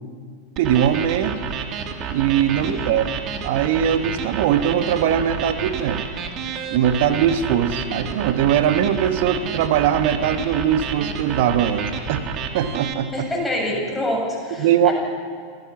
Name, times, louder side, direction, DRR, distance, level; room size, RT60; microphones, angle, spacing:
sound 1, 0.6-12.9, right 6 dB, 35° right, 2.1 m, -30 dB
voice 1, 0.6-1.4 2.1-3.1 3.4-6.1 6.7-12.3 12.5-13.1 14.6-14.9, right 9 dB, 50° right, 10 dB, 1.3 m, -20 dB
voice 2, 2.6-3.1 13.1-14.9, left 1 dB, ahead, -3 dB, 7.6 m, -26 dB
27.0 x 16.0 x 7.3 m, 2.1 s
figure-of-eight pair, 90°, 0 cm